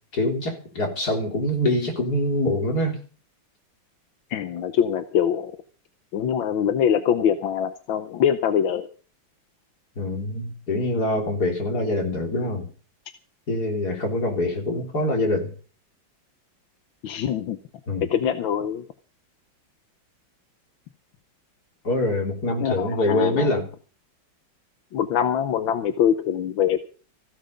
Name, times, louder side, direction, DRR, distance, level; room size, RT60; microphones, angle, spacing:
voice 1, 0.1-3.0 10.0-12.7 13.5-15.5 17.9-18.1 21.8-23.7, left 1 dB, 50° left, 2 dB, 4.1 m, -24 dB
voice 2, 4.3-5.5 6.1-8.9 17.0-17.6 18.1-18.8 22.6-23.5 24.9-26.9, left 9 dB, 85° left, 9 dB, 1.7 m, -23 dB
15.5 x 12.5 x 5.2 m, 0.40 s
omnidirectional pair, 2.1 m